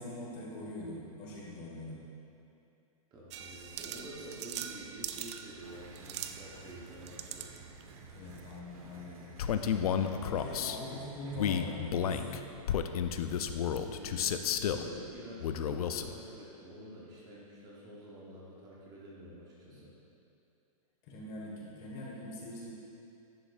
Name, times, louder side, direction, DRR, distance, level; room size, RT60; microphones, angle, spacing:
voice 1, 0.0-2.0 8.0-9.3 10.2-12.4 19.6-19.8 21.0-22.7, left 1 dB, 30° left, -4 dB, 1.4 m, -43 dB
voice 2, 3.1-7.5 13.8-19.9, right 1 dB, 20° right, -5 dB, 1.0 m, -48 dB
sound 1, 3.3-8.6, right 9 dB, 50° right, 0.4 m, -44 dB
sound 2, 5.6-11.7, right 3 dB, 70° right, 1.3 m, -53 dB
Male speech man speaking, 9.4-10.8 11.3-14.9 15.4-16.1, left 8 dB, 80° left, 0.5 m, -31 dB
10.5 x 7.2 x 2.4 m, 2.7 s
hypercardioid pair, 160°, 19 cm